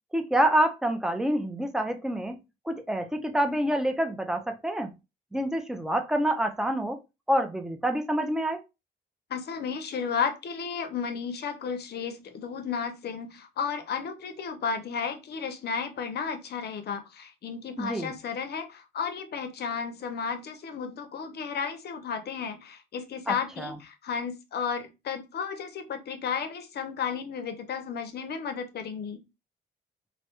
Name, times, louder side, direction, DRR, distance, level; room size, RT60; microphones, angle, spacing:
voice 1, 0.1-2.4 2.7-4.9 5.3-7.0 7.3-8.6 17.8-18.1 23.3-23.8, right 1 dB, 5° right, 0.4 m, -27 dB
voice 2, 9.3-29.2, left 6 dB, 55° left, 0.6 m, -33 dB
2.1 x 2.0 x 2.9 m
cardioid pair, 90°, 20 cm